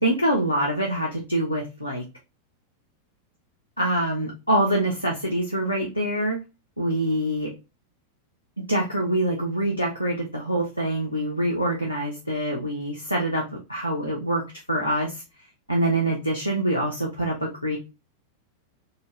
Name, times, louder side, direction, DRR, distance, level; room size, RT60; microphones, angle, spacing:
voice 1, 0.0-2.0 3.8-6.4 6.8-7.5 8.7-14.4 14.7-15.2 15.7-17.8, right 1 dB, 90° left, -2 dB, 0.6 m, -25 dB
3.9 x 2.0 x 2.4 m, 0.27 s
figure-of-eight pair, 90°, 0 cm